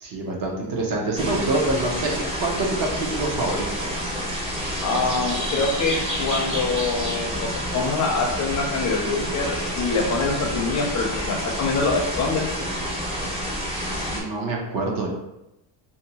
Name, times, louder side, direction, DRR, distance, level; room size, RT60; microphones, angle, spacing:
voice 1, 0.0-2.1 2.4-2.9 3.1-3.9 14.1-15.1, right 2 dB, 50° right, -1 dB, 0.7 m, -26 dB
sound 1, 1.2-14.2, equal, 15° right, 0.5 m, -29 dB
voice 2, 4.8-12.5, left 3 dB, 40° left, 1 dB, 0.4 m, -25 dB
2.7 x 2.3 x 2.7 m, 0.90 s
cardioid pair, 140°, 44 cm